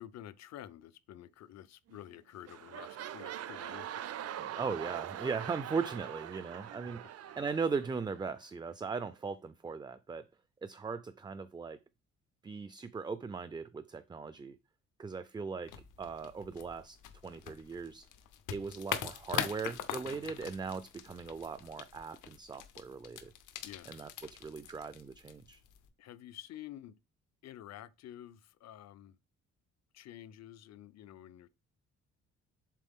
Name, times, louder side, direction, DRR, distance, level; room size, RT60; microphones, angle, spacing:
voice 1, 0.0-4.4 6.6-6.8 7.0-7.1 23.6-24.1 26.0-26.9 27.4-29.2 29.9-31.5, left 12 dB, 60° left, 0.6 m, -50 dB
sound 1, 1.9-2.2 2.4-8.3 8.9-9.0, right 11 dB, 55° right, 0.6 m, -43 dB
voice 2, 4.4-10.2 10.6-11.8 12.4-14.6 15.0-15.7 16.0-17.0 17.2-18.1 18.5-23.3 23.9-25.6, right 5 dB, 15° right, 0.3 m, -39 dB
sound 2, 15.6-25.9, left 9 dB, 90° left, 0.9 m, -43 dB
7.5 x 3.7 x 3.6 m
cardioid pair, 115°, 30 cm